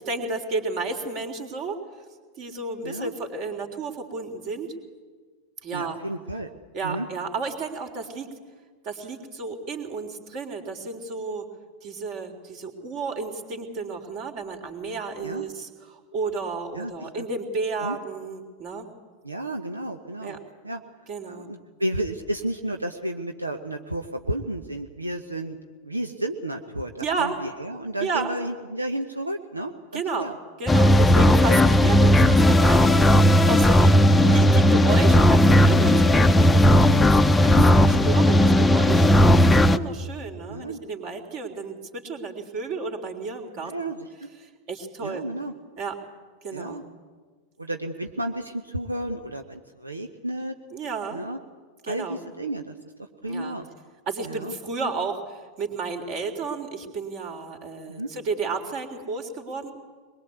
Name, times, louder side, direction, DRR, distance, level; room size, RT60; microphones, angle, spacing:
voice 1, 0.0-1.8 2.4-4.7 5.6-6.0 6.7-8.3 8.8-11.5 11.8-18.9 20.2-20.4 21.1-21.5 27.0-27.4 28.0-28.4 29.9-30.3 30.6-43.7 44.7-45.2 45.8-46.0 46.4-46.8 50.7-51.2 51.8-52.2 53.2-53.6 54.1-59.7, right 4 dB, 40° right, 5 dB, 3.5 m, -32 dB
voice 2, 5.7-6.5 6.8-7.1 15.2-15.4 16.7-17.2 17.8-18.0 19.2-20.4 20.6-20.8 21.2-25.6 25.8-30.3 31.5-31.6 34.1-34.7 37.5-37.7 40.5-40.8 43.6-44.3 45.0-45.5 46.5-46.8 47.6-50.6 51.1-51.4 51.9-52.9 53.2-53.7 54.2-54.5 57.9-58.1, right 1 dB, 80° right, 6 dB, 1.1 m, -32 dB
sound 1, 30.7-39.8, left 1 dB, 10° left, 0.8 m, -16 dB
23.0 x 22.0 x 8.3 m, 1.5 s
figure-of-eight pair, 90°, 0 cm